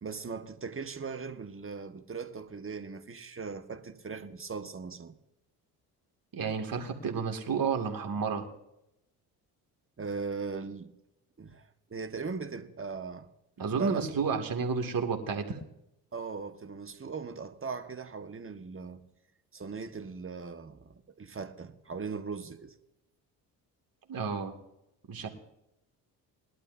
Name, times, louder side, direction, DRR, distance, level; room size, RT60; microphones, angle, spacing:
voice 1, 0.0-5.2 10.0-10.9 11.4-13.3 13.7-14.3 16.1-19.0 19.5-22.8, right 5 dB, 25° right, 1.4 m, -39 dB
voice 2, 6.3-8.5 13.6-15.6 24.1-24.5 25.1-25.3, right 5 dB, 45° right, 2.3 m, -31 dB
21.0 x 12.0 x 2.7 m
hypercardioid pair, 55°, 46 cm